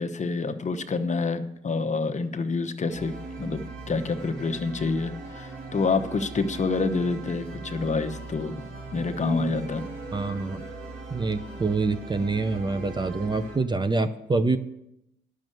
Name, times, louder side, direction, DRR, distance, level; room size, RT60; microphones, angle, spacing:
voice 1, 0.0-8.7 8.9-9.9, left 4 dB, 35° left, 8 dB, 0.9 m, -27 dB
sound 1, 2.9-13.6, right 3 dB, 75° right, 3.3 m, -40 dB
voice 2, 10.1-10.6 11.1-14.6, right 3 dB, 20° right, 11 dB, 0.6 m, -26 dB
10.5 x 6.5 x 7.8 m, 0.82 s
cardioid pair, 90°, 20 cm